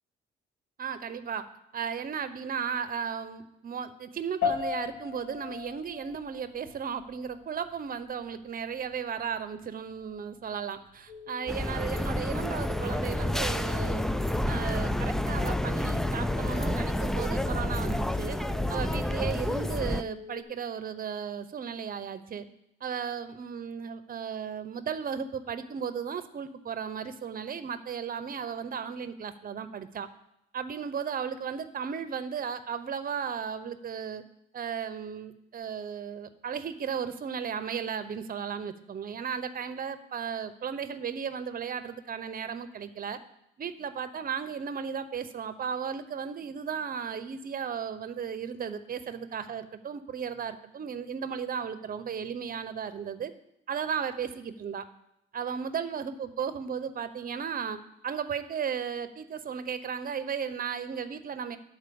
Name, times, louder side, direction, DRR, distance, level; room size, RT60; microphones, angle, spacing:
voice 1, 0.8-1.5 1.7-14.1 14.5-18.4 18.7-22.5 22.8-30.1 30.5-34.2 34.5-43.2 43.6-53.3 53.7-54.8 55.3-57.8 58.0-61.6, right 7 dB, 45° right, 11 dB, 0.8 m, -35 dB
sound 1, 4.4-14.0, left 7 dB, 70° left, 1.9 m, -39 dB
sound 2, 11.1-20.4, left 8 dB, 50° left, 3.2 m, -45 dB
sound 3, 11.5-20.0, left 1 dB, ahead, 0.3 m, -29 dB
11.0 x 4.4 x 6.9 m, 0.81 s
cardioid pair, 90°, 20 cm